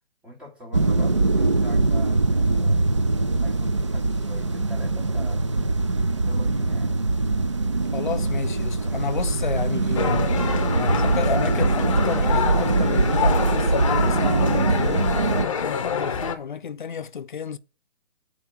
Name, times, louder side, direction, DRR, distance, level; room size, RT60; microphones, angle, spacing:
voice 1, 0.2-2.9 3.4-5.5 6.3-7.0, equal, 5° right, 1.5 m, -43 dB
sound 1, 0.7-15.4, right 3 dB, 30° right, 0.4 m, -22 dB
voice 2, 7.9-10.3 10.7-17.6, left 7 dB, 50° left, 0.6 m, -31 dB
sound 2, 9.9-16.3, left 6 dB, 30° left, 1.0 m, -27 dB
8.6 x 4.7 x 6.9 m
hypercardioid pair, 160°, 32 cm